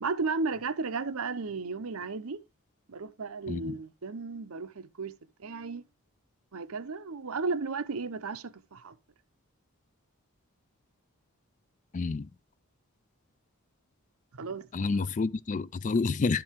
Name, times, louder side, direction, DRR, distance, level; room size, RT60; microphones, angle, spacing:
voice 1, 0.0-2.4 2.9-5.1 5.4-5.8 6.5-8.9 14.3-14.7, right 4 dB, 70° right, 0.7 m, -34 dB
voice 2, 11.9-12.3 14.7-16.4, left 4 dB, 35° left, 0.3 m, -29 dB
11.5 x 4.6 x 3.6 m
head